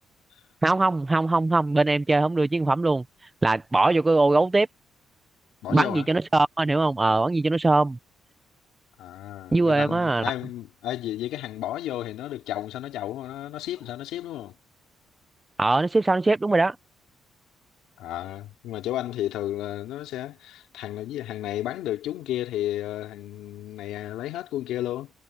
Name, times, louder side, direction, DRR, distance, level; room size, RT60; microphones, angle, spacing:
voice 1, 0.6-3.0 3.4-4.7 5.7-8.0 9.5-10.3 15.6-16.8, right 2 dB, 20° right, 1.0 m, -21 dB
voice 2, 5.6-6.1 9.0-14.5 18.0-25.1, left 13 dB, 90° left, 3.4 m, -32 dB
cardioid pair, 90°, 0 cm